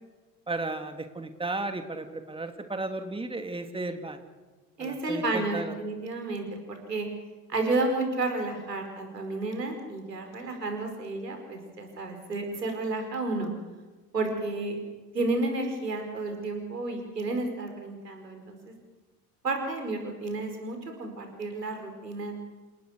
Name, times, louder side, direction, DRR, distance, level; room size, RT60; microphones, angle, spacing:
voice 1, 0.5-4.2 4.8-5.7, right 2 dB, 10° right, 6 dB, 2.7 m, -34 dB
voice 2, 4.8-7.1 7.5-13.5 14.1-14.8 15.1-18.7 19.4-22.3, right 2 dB, 85° right, 4 dB, 5.1 m, -31 dB
29.0 x 18.5 x 6.6 m, 1.3 s
figure-of-eight pair, 70°, 47 cm